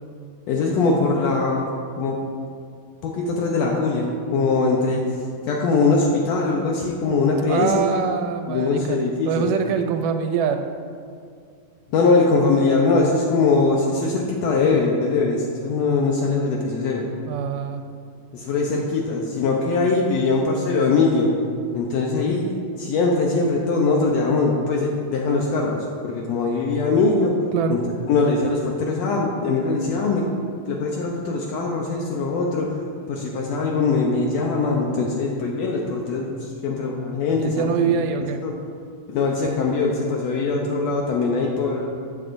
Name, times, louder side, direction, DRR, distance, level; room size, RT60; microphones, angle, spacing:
voice 1, 0.5-1.7 2.0-2.2 3.0-5.1 5.4-7.9 8.5-9.4 11.9-17.0 18.3-21.3 21.7-22.5 22.8-27.3 27.7-27.8 28.1-30.2 30.7-32.8 33.1-36.3 36.6-37.7 38.4-38.5 39.1-41.9, left 3 dB, 85° left, -1 dB, 1.5 m, -21 dB
voice 2, 7.5-9.0 9.3-10.6 17.3-17.8 27.5-27.8 37.4-38.4, right 6 dB, 80° right, 6 dB, 2.0 m, -24 dB
14.5 x 8.1 x 2.6 m, 2.2 s
omnidirectional pair, 4.0 m